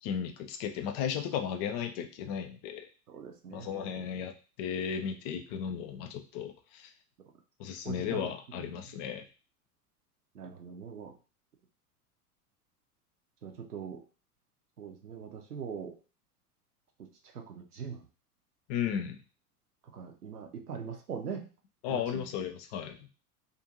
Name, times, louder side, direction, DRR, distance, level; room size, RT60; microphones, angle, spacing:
voice 1, 0.0-2.9 3.5-4.3 4.6-6.9 7.6-9.2 18.7-19.2 21.8-23.1, left 8 dB, 30° left, 6 dB, 0.4 m, -35 dB
voice 2, 3.1-4.1 7.8-8.7 10.3-11.1 13.4-14.0 14.8-16.0 17.0-17.1 17.3-18.1 19.9-21.5 21.9-22.2, right 6 dB, 80° right, 4 dB, 0.7 m, -42 dB
2.5 x 2.4 x 2.8 m, 0.34 s
figure-of-eight pair, 80°, 45 cm